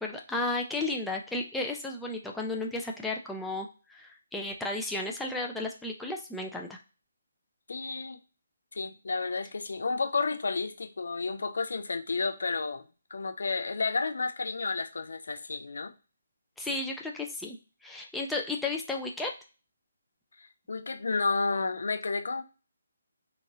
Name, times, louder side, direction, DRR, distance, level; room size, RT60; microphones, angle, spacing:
voice 1, 0.0-6.8 16.6-19.3, left 2 dB, 5° left, 0 dB, 0.4 m, -33 dB
voice 2, 7.7-8.2 8.7-12.8 13.1-15.9 20.4-22.4, left 4 dB, 65° left, 7 dB, 0.5 m, -31 dB
2.9 x 2.5 x 2.7 m, 0.34 s
figure-of-eight pair, 145°, 0 cm